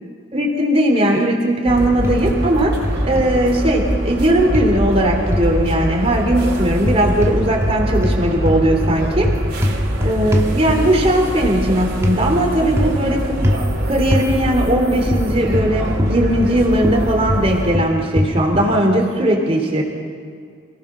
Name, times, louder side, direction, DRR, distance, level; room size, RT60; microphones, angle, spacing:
voice 1, 0.3-2.7 3.0-9.3 10.0-13.5 13.9-19.8, right 1 dB, 30° right, 1 dB, 3.5 m, -18 dB
sound 1, 1.7-17.7, equal, 50° right, 3.4 m, -24 dB
sound 2, 2.0-2.5 2.8-3.3 4.5-5.6 6.8-7.8 8.0-11.1 12.0-12.2 12.8-13.1 13.4-13.7 14.1-14.3 15.1-16.6 16.8-18.8, left 1 dB, 15° right, 1.7 m, -22 dB
27.5 x 17.5 x 6.3 m, 2.2 s
head